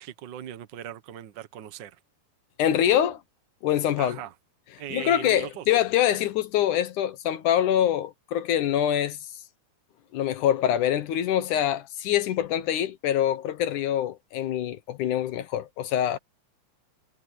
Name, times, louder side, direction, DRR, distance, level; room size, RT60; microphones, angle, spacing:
voice 1, 0.0-2.0 4.0-4.3 4.8-5.6, right 11 dB, 75° right, 1.0 m, -39 dB
voice 2, 2.6-3.2 3.6-4.2 4.9-9.2 10.1-16.2, left 11 dB, 75° left, 2.6 m, -24 dB
omnidirectional pair, 3.6 m